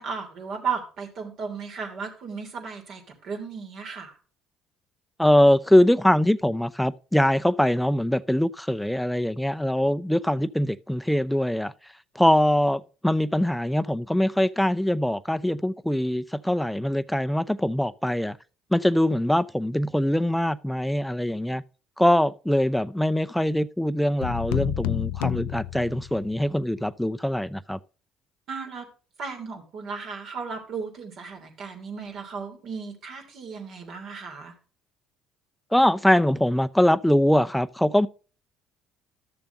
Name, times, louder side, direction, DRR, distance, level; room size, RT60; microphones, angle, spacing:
voice 1, 0.0-4.2 28.5-28.9 29.2-34.5, right 5 dB, 60° right, 3.2 m, -35 dB
voice 2, 5.2-11.7 12.2-18.4 18.7-21.6 22.0-27.8 35.7-38.1, left 1 dB, 5° left, 0.6 m, -22 dB
sound 1, 24.2-26.5, left 12 dB, 80° left, 0.4 m, -29 dB
13.0 x 6.9 x 2.7 m
hypercardioid pair, 65°, 0 cm